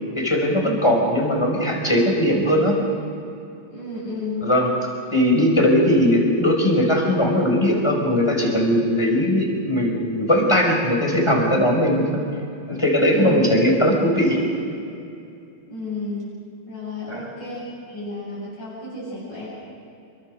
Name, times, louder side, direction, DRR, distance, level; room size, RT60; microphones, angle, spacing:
voice 1, 0.2-2.8 4.4-4.7 5.1-12.2 12.7-14.4 17.1-17.2, equal, 15° left, 0 dB, 5.3 m, -19 dB
voice 2, 3.7-4.5 13.1-13.5 15.7-16.2 16.7-19.5, left 2 dB, 65° left, -7 dB, 8.8 m, -32 dB
28.0 x 24.0 x 6.7 m, 2.6 s
omnidirectional pair, 2.1 m